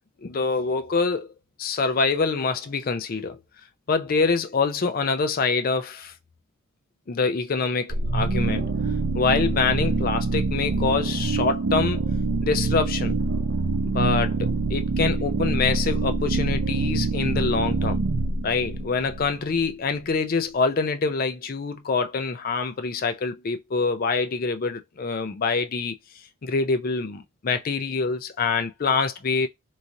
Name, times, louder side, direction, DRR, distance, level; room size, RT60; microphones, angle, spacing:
voice 1, 0.2-1.3 1.6-3.4 3.9-6.1 7.1-8.7 9.1-12.0 12.4-13.2 13.8-18.0 18.4-26.0 26.4-29.5, left 4 dB, 40° left, 0.4 m, -25 dB
sound 1, 7.9-19.7, right 3 dB, 55° right, 0.5 m, -25 dB
3.0 x 2.5 x 2.6 m
head